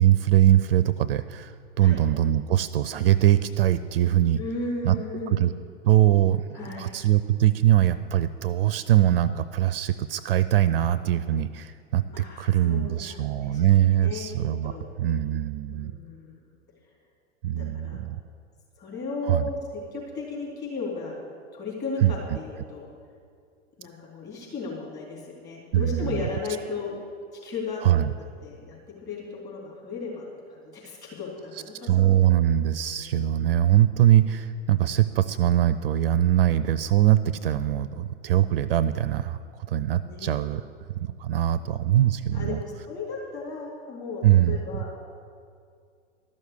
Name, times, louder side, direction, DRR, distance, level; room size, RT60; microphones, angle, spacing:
voice 1, 0.0-4.4 4.8-5.0 5.3-5.5 5.8-14.7 15.0-15.9 17.4-18.2 19.3-19.5 22.0-22.1 25.7-26.3 27.8-28.1 31.9-39.4 39.7-40.6 41.0-42.6 44.2-44.6, right 12 dB, 55° right, 15 dB, 0.4 m, -22 dB
voice 2, 4.4-5.4 6.5-6.9 12.1-14.2 14.6-14.9 15.7-16.5 17.6-18.0 18.8-21.2 21.5-22.9 23.8-27.0 27.3-27.8 28.2-28.8 29.0-32.2 33.0-33.3 40.0-40.3 41.9-42.0 42.3-45.0, left 3 dB, 30° left, -3 dB, 3.9 m, -35 dB
12.5 x 6.4 x 8.3 m, 2.2 s
figure-of-eight pair, 95°, 36 cm